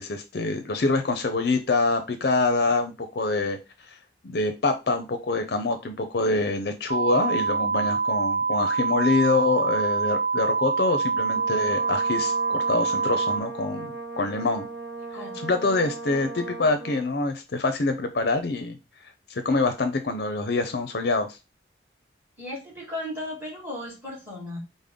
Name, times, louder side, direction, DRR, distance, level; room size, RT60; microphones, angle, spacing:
voice 1, 0.0-3.6 3.9-4.0 4.2-14.7 15.3-18.8 19.3-21.4, left 3 dB, 55° left, 7 dB, 0.5 m, -25 dB
sound 1, 6.9-13.4, right 4 dB, 35° right, 0.3 m, -25 dB
Brass instrument, 11.3-17.1, right 3 dB, 70° right, 0.7 m, -38 dB
voice 2, 22.4-24.6, left 1 dB, 10° right, -4 dB, 1.8 m, -35 dB
5.1 x 2.1 x 3.6 m, 0.27 s
head